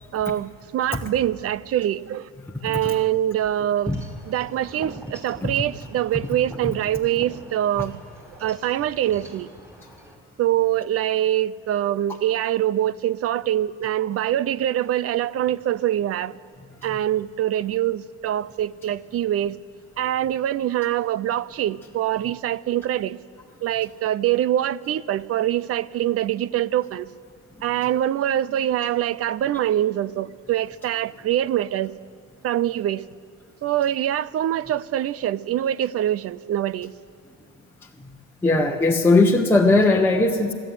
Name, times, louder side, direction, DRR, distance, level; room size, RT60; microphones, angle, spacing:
voice 1, 0.1-2.3 2.6-3.9 4.3-8.0 8.4-9.5 10.4-16.4 16.8-19.6 20.0-23.2 23.6-27.1 27.6-32.0 32.4-33.1 33.6-36.9, right 12 dB, 50° right, 19 dB, 0.6 m, -24 dB
Wind chime / Wind, 3.8-10.1, right 1 dB, 10° right, 4.1 m, -44 dB
voice 2, 38.4-40.5, left 2 dB, 5° left, -1 dB, 1.2 m, -18 dB
24.0 x 13.0 x 9.4 m, 2.1 s
cardioid pair, 110°, 31 cm